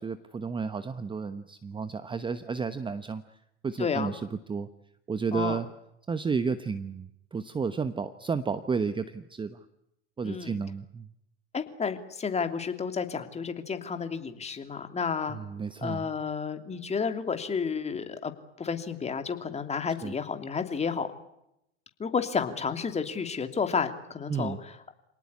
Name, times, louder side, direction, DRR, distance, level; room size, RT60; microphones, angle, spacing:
voice 1, 0.0-3.2 3.6-4.7 5.1-5.7 6.1-9.6 10.2-11.1 15.3-16.1 20.0-20.1 24.3-24.6, right 5 dB, 15° right, 12 dB, 1.1 m, -32 dB
voice 2, 3.8-4.1 5.3-5.6 10.2-10.6 11.5-15.4 15.8-18.3 18.6-21.1 22.0-24.9, left 5 dB, 20° left, 8 dB, 2.9 m, -31 dB
27.5 x 18.5 x 9.8 m, 0.82 s
hypercardioid pair, 105°, 35 cm